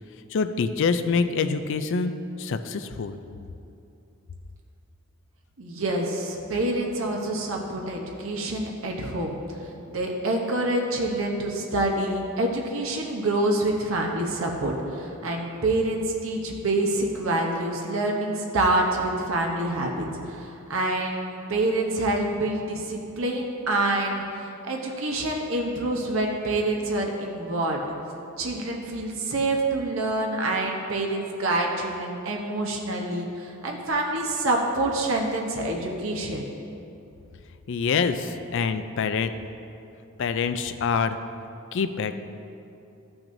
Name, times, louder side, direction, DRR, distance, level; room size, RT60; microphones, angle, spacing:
voice 1, 0.3-2.1 2.4-3.2 37.7-39.3 40.2-41.2 41.7-42.2, left 5 dB, 60° left, 10 dB, 0.4 m, -25 dB
voice 2, 5.6-9.4 9.9-27.8 28.4-36.5, right 2 dB, 65° right, 0 dB, 0.9 m, -27 dB
13.5 x 5.9 x 2.6 m, 2.7 s
head